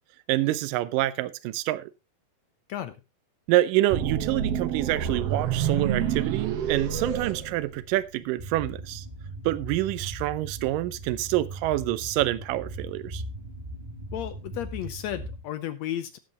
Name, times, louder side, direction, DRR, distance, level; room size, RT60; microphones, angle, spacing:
voice 1, 0.3-1.9 3.5-9.1 9.5-13.2, right 16 dB, 80° right, 2.3 m, -27 dB
sound 1, 3.9-8.2, right 8 dB, 65° right, 1.7 m, -28 dB
sound 2, 8.4-15.4, right 1 dB, 20° right, 1.7 m, -39 dB
voice 2, 14.1-16.2, left 11 dB, 80° left, 1.6 m, -33 dB
18.0 x 7.6 x 2.9 m
omnidirectional pair, 3.8 m